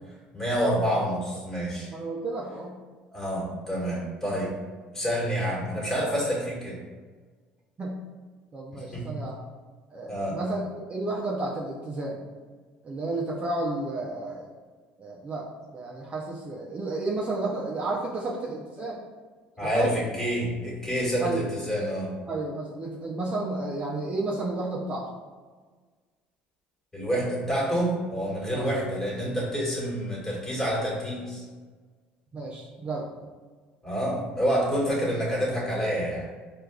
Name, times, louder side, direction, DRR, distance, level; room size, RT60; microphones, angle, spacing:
voice 1, 0.3-1.9 3.1-4.5 4.9-6.8 8.7-9.1 10.1-10.4 19.6-22.1 26.9-31.4 33.8-36.2, equal, 10° left, -5 dB, 1.5 m, -28 dB
voice 2, 1.9-2.8 7.8-8.0 8.5-9.4 9.9-12.2 12.8-14.5 15.0-15.5 15.7-19.0 19.6-19.9 21.2-21.4 22.3-25.1 28.5-28.7 32.3-33.1, right 2 dB, 30° right, -3 dB, 0.5 m, -32 dB
4.5 x 2.4 x 2.3 m, 1.4 s
supercardioid pair, 90°, 4 cm